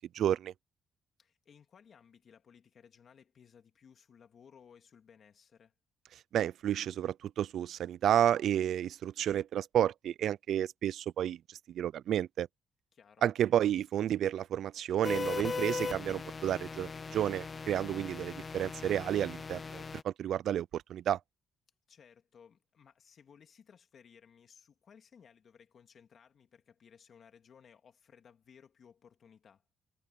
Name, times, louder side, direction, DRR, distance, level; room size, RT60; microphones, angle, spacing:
voice 1, 0.1-0.5 6.3-12.5 13.2-21.2, right 10 dB, 70° right, 0.3 m, -31 dB
voice 2, 1.2-5.7 12.9-13.3 21.9-29.6, left 7 dB, 55° left, 2.7 m, -60 dB
sound 1, 15.0-20.0, left 4 dB, 35° left, 0.5 m, -39 dB
cardioid pair, 90°, 0 cm